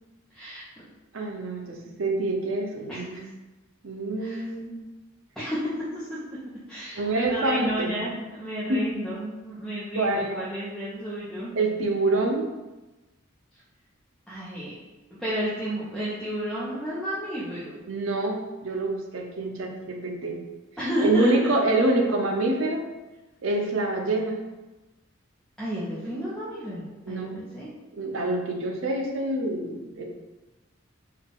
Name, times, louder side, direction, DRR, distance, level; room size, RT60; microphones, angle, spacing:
voice 1, 0.3-0.9 2.9-3.3 4.2-4.5 5.4-6.4 6.7-11.5 14.3-14.7 15.2-17.8 20.8-21.5 25.6-27.7, equal, ahead, -11 dB, 0.6 m, -32 dB
voice 2, 1.1-3.3 3.8-4.8 7.0-8.0 8.7-8.8 9.9-10.4 11.6-12.5 17.9-20.4 21.0-22.8 23.4-24.4 27.1-27.4 27.9-30.0, right 2 dB, 75° right, 2 dB, 0.6 m, -26 dB
3.7 x 2.3 x 3.6 m, 1.1 s
head